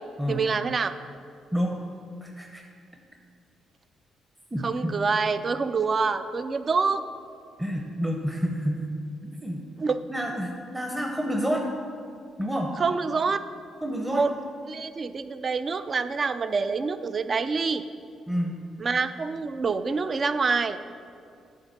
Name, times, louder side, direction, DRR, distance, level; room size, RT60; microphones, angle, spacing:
voice 1, 0.3-0.9 4.6-7.0 9.8-10.0 12.8-13.4 14.1-14.3 14.7-17.8 18.8-20.8, right 4 dB, 40° right, 11 dB, 0.4 m, -26 dB
voice 2, 2.2-2.6 4.5-4.9 7.6-8.8 9.2-9.7 10.1-11.7 12.4-12.8 13.8-14.3 18.3-18.6, equal, 5° right, 0 dB, 0.7 m, -29 dB
9.3 x 3.7 x 6.6 m, 2.4 s
cardioid pair, 90°, 0 cm